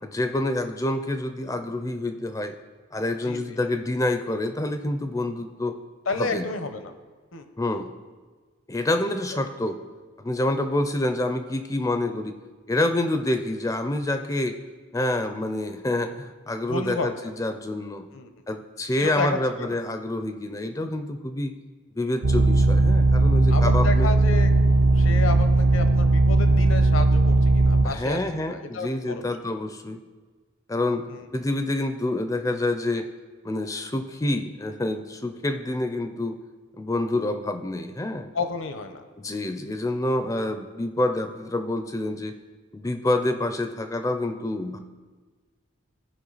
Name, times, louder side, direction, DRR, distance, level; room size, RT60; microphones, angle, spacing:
voice 1, 0.0-2.5 2.9-5.8 6.2-6.4 7.6-7.9 8.7-9.8 10.2-12.3 12.7-14.6 14.9-18.1 18.5-21.6 22.0-24.1 27.8-30.0 30.7-31.1 31.3-33.1 33.4-36.4 36.8-38.3 39.2-42.3 42.7-44.8, left 1 dB, 15° left, 8 dB, 0.4 m, -27 dB
voice 2, 3.2-3.6 6.1-6.9 7.3-7.4 16.7-17.1 18.1-18.4 19.0-19.8 23.5-24.5 24.9-29.4 31.1-31.3 38.3-39.1, left 3 dB, 75° left, 8 dB, 0.9 m, -31 dB
sound 1, 22.2-27.9, right 2 dB, 75° right, 0.6 m, -18 dB
15.0 x 5.2 x 4.0 m, 1.4 s
head